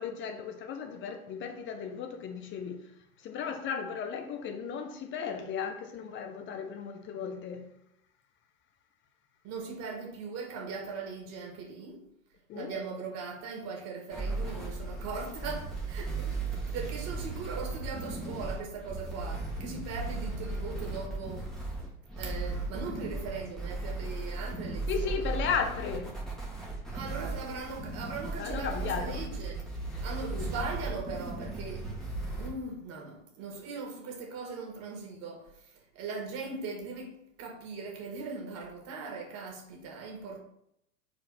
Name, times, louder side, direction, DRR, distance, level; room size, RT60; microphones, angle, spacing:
voice 1, 0.0-2.8 3.2-7.7 12.5-12.7 24.9-26.2 28.4-29.3 29.9-30.0 30.3-30.5, left 6 dB, 25° left, 1.1 m, -35 dB
voice 2, 9.4-12.1 12.5-21.5 22.2-25.3 26.9-29.7 30.0-31.9 32.4-40.4, right 4 dB, 35° right, 2.3 m, -40 dB
sound 1, 14.1-32.5, right 3 dB, ahead, 1.9 m, -36 dB
4.9 x 4.3 x 5.8 m
figure-of-eight pair, 95°, 42 cm